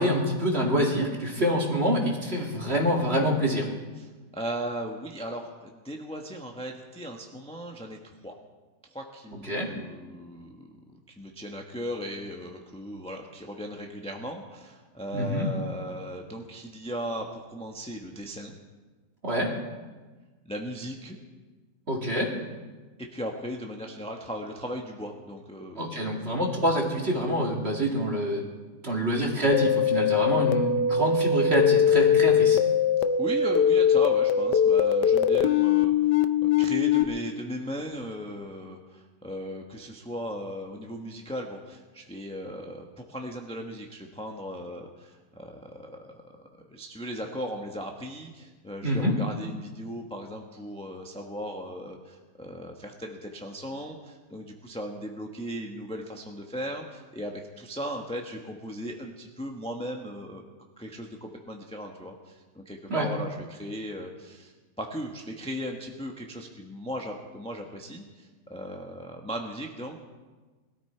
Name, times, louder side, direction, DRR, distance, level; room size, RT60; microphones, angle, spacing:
voice 1, 0.0-3.7 9.4-9.7 15.1-15.5 19.2-19.5 21.9-22.5 25.8-28.5 28.8-32.6 48.8-49.1 62.9-63.1, equal, 40° right, -1 dB, 2.6 m, -26 dB
voice 2, 4.0-8.3 8.9-10.7 11.1-18.6 20.5-21.2 23.1-26.1 33.2-60.5 60.8-64.5 64.8-70.0, equal, 5° left, 1 dB, 1.0 m, -37 dB
sound 1, 29.5-37.0, left 7 dB, 80° left, 1.3 m, -22 dB
20.5 x 13.5 x 4.5 m, 1.3 s
omnidirectional pair, 1.8 m